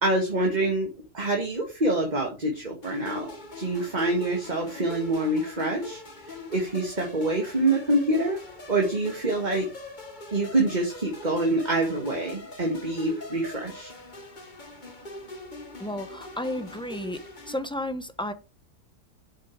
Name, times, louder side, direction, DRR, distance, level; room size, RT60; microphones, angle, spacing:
voice 1, 0.0-0.9 1.1-3.3 3.6-8.4 8.7-9.7 10.3-13.9, right 2 dB, 25° right, 2.1 m, -26 dB
sound 1, 2.8-17.6, left 2 dB, 30° left, 1.7 m, -43 dB
voice 2, 15.8-18.3, left 1 dB, 5° left, 0.8 m, -33 dB
7.9 x 7.9 x 4.9 m
omnidirectional pair, 1.7 m